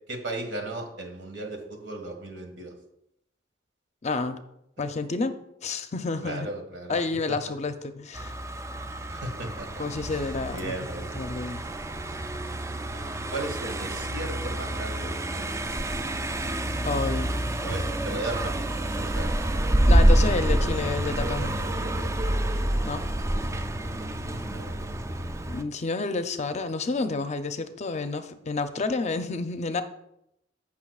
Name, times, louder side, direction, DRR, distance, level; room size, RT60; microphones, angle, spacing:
voice 1, 0.1-2.7 6.2-7.0 9.1-9.8 10.1-11.1 13.3-15.6 17.6-19.3 23.8-24.8, right 2 dB, 75° right, 4 dB, 1.7 m, -36 dB
voice 2, 4.0-4.4 4.8-6.5 6.9-8.3 9.8-10.7 11.1-11.6 16.8-17.3 19.9-21.5 22.9-23.0 25.5-29.8, left 3 dB, 40° left, 9 dB, 0.5 m, -29 dB
Car passing by, 8.1-25.6, right 1 dB, 15° right, 0.4 m, -27 dB
14.5 x 5.9 x 2.4 m, 0.80 s
head